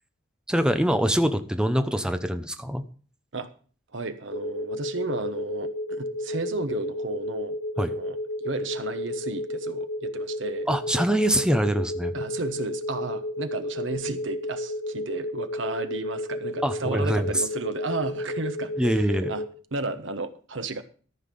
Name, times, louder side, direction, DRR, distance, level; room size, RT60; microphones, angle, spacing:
voice 1, 0.5-2.8 7.8-7.9 10.7-12.1 16.6-17.4 18.8-19.3, equal, 5° right, 0.8 m, -24 dB
voice 2, 3.9-10.7 12.1-19.4 19.7-20.8, right 3 dB, 70° right, 1.1 m, -33 dB
sound 1, 4.3-19.5, left 1 dB, 45° left, 1.4 m, -32 dB
14.0 x 5.8 x 6.9 m
head